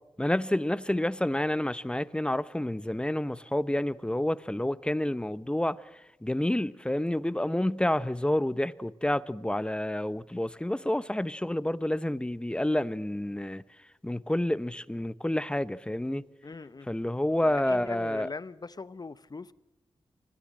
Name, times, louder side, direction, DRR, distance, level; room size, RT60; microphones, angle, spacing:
voice 1, 0.2-5.8 6.2-13.6 14.0-16.2 16.9-18.3, left 1 dB, 10° left, 0.8 m, -29 dB
voice 2, 16.4-16.9 17.4-19.5, left 4 dB, 40° left, 0.8 m, -40 dB
25.0 x 16.5 x 7.5 m
cardioid pair, 55°, 11 cm